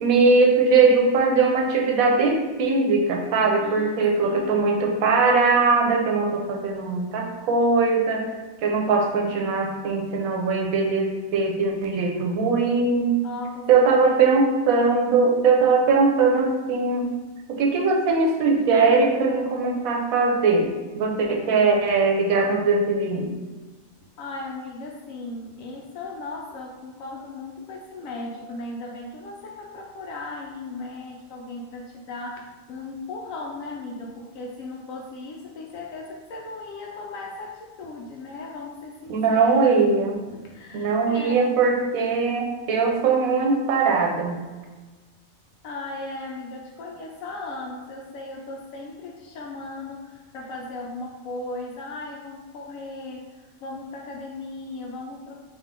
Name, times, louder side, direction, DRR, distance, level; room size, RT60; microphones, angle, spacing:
voice 1, 0.0-8.2 8.6-13.2 13.7-17.1 17.5-23.3 39.1-40.2 40.7-44.5, right 4 dB, 85° right, 1 dB, 1.1 m, -20 dB
voice 2, 3.6-4.7 13.2-14.2 24.2-39.8 40.3-41.6 45.6-55.4, left 2 dB, 75° left, -1 dB, 1.0 m, -37 dB
3.6 x 2.8 x 3.6 m, 1.3 s
omnidirectional pair, 1.4 m